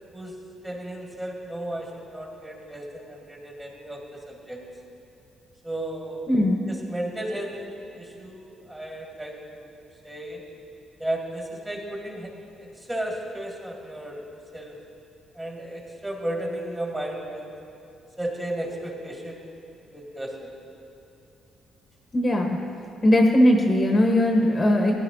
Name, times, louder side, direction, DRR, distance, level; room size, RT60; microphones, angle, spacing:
voice 1, 0.6-4.6 5.6-6.2 6.7-7.6 7.9-9.7 10.0-10.4 11.0-12.3 12.6-14.2 14.5-14.8 15.3-17.5 18.2-19.6 19.9-20.5, right 1 dB, 15° right, -1 dB, 2.0 m, -34 dB
voice 2, 6.3-6.6 22.1-22.6 23.0-24.9, left 1 dB, 30° left, 0 dB, 1.1 m, -19 dB
15.5 x 10.5 x 2.7 m, 2.8 s
cardioid pair, 90°, 0 cm